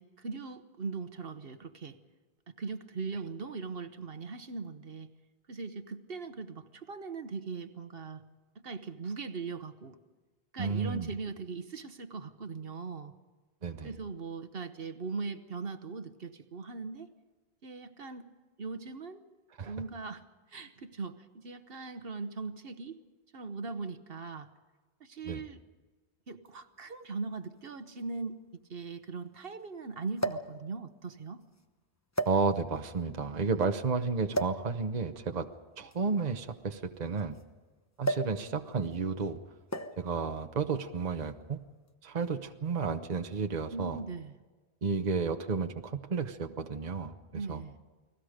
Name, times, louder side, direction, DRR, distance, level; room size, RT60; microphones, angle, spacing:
voice 1, 0.0-2.0 2.5-5.1 5.5-8.2 8.6-10.0 10.5-13.1 13.8-17.1 17.6-18.3 18.6-19.2 19.6-23.0 23.3-24.5 25.0-25.6 26.3-28.4 28.7-31.4 33.5-33.6 43.7-44.4 47.3-47.8, right 4 dB, 60° right, 10 dB, 1.3 m, -40 dB
voice 2, 10.6-11.1 13.6-13.9 19.6-19.7 25.2-25.4 32.3-35.5 35.8-37.4 38.0-39.4 40.0-41.6 42.0-44.0 44.8-47.6, right 5 dB, 40° right, 6 dB, 1.0 m, -32 dB
sound 1, 26.4-26.5 27.6-27.7 28.0-28.1 30.2-30.6 31.4-31.6 32.1-32.8 34.3-34.7 35.8-37.4 38.0-38.4 38.7-38.9 39.7-40.1 41.0-41.3, right 1 dB, 15° left, 1.0 m, -34 dB
30.0 x 20.0 x 5.1 m, 1.3 s
omnidirectional pair, 1.1 m